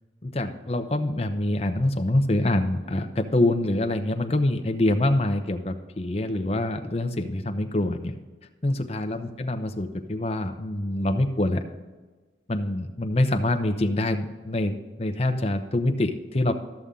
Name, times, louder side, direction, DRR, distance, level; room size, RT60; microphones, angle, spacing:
voice 1, 0.2-8.1 8.6-11.7 12.5-16.5, left 1 dB, 35° left, 6 dB, 0.7 m, -25 dB
13.5 x 6.9 x 3.8 m, 1.3 s
head